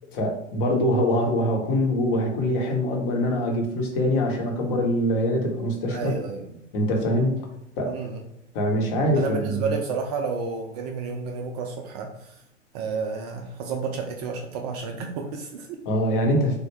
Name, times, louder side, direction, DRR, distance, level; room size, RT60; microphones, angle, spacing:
voice 1, 0.1-6.1 6.7-7.4 7.8-8.0 8.5-9.7 15.8-16.6, equal, 45° left, 1 dB, 0.9 m, -24 dB
voice 2, 5.9-6.5 7.9-8.2 9.2-12.3 12.7-15.8, right 5 dB, 35° right, 3 dB, 0.4 m, -31 dB
3.3 x 2.1 x 3.1 m, 0.82 s
figure-of-eight pair, 90°, 37 cm